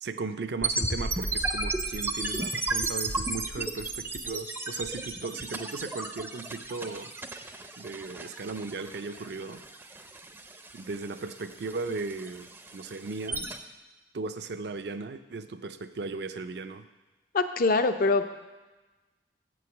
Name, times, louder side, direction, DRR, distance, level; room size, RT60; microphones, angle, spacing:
voice 1, 0.0-7.1 7.8-9.6 10.7-13.5 14.1-16.9, right 3 dB, 65° right, 10 dB, 0.5 m, -37 dB
sound 1, 0.6-13.6, right 2 dB, 15° right, 0.5 m, -34 dB
voice 2, 17.3-18.3, left 3 dB, 50° left, 9 dB, 0.5 m, -23 dB
7.8 x 4.8 x 7.0 m, 1.2 s
head